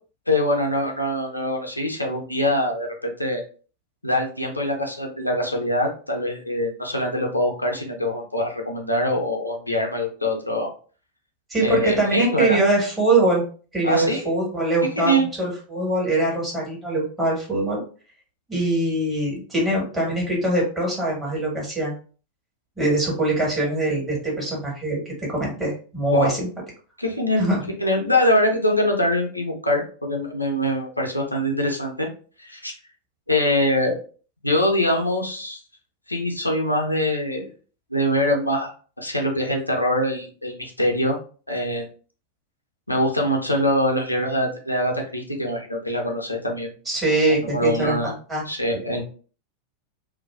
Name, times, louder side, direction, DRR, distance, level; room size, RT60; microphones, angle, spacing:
voice 1, 0.3-3.4 4.0-10.7 11.6-12.6 13.8-14.3 15.0-15.3 26.1-26.3 27.0-27.4 27.8-32.1 32.4-32.7 33.3-34.0 34.4-35.6 36.1-37.5 37.9-38.7 39.0-41.2 41.5-41.9 42.9-46.7 47.3-48.1 48.5-49.0, left 1 dB, 85° left, 1 dB, 0.5 m, -23 dB
voice 2, 11.5-13.4 13.7-17.8 18.5-21.9 22.8-26.5 27.4-27.6 46.8-48.4, right 2 dB, 15° right, -4 dB, 1.4 m, -23 dB
2.5 x 2.2 x 2.3 m, 0.39 s
figure-of-eight pair, 90°, 0 cm